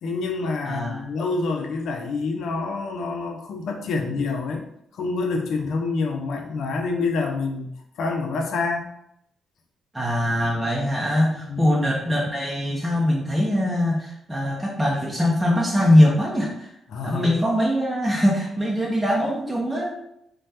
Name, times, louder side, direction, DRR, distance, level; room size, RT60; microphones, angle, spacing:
voice 1, 0.0-4.6 4.9-7.7 8.0-8.9 11.4-11.6 16.9-17.3, left 3 dB, 75° left, 3 dB, 0.5 m, -27 dB
voice 2, 0.6-1.0 9.9-16.7 17.0-20.0, left 1 dB, 10° right, -3 dB, 0.6 m, -22 dB
3.1 x 2.2 x 2.8 m, 0.76 s
cardioid pair, 70°, 0 cm